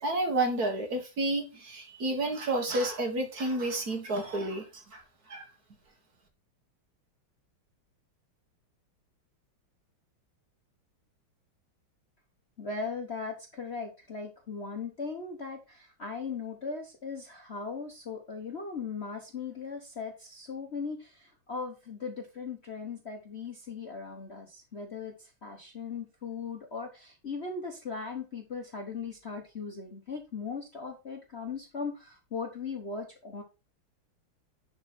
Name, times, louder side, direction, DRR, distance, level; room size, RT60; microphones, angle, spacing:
voice 1, 0.0-4.6 4.9-5.0 5.3-5.4, right 2 dB, 50° right, 2.1 m, -30 dB
voice 2, 12.6-33.4, left 5 dB, 40° left, 1.0 m, -38 dB
10.5 x 4.5 x 4.2 m
omnidirectional pair, 2.3 m